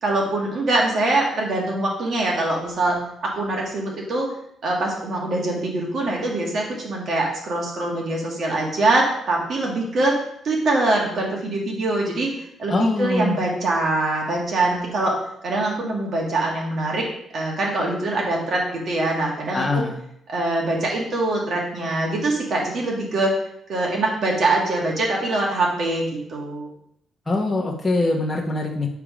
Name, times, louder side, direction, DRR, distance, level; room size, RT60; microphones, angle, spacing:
voice 1, 0.0-4.3 4.6-10.2 10.4-12.3 12.6-15.2 15.4-17.1 17.3-19.8 20.3-23.4 23.7-26.7, right 2 dB, 55° right, -1 dB, 2.0 m, -23 dB
voice 2, 12.7-13.4 19.5-19.9 27.3-28.9, left 2 dB, 15° left, -3 dB, 1.0 m, -23 dB
8.6 x 3.6 x 5.0 m, 0.74 s
cardioid pair, 90°, 0 cm